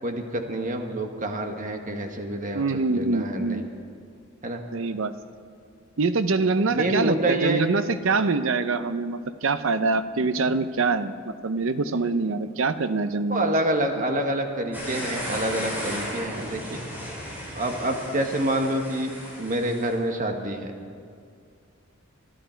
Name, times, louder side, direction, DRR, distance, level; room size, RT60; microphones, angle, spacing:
voice 1, 0.0-3.6 4.4-4.6 6.7-7.8 13.3-16.8 17.5-19.1 19.4-20.7, right 1 dB, 40° right, 4 dB, 1.5 m, -27 dB
voice 2, 2.5-3.7 4.7-5.1 6.0-13.5, right 3 dB, 65° right, 12 dB, 0.7 m, -24 dB
sound 1, 14.7-20.0, equal, 10° right, 5.1 m, -35 dB
24.5 x 12.5 x 4.5 m, 2.2 s
head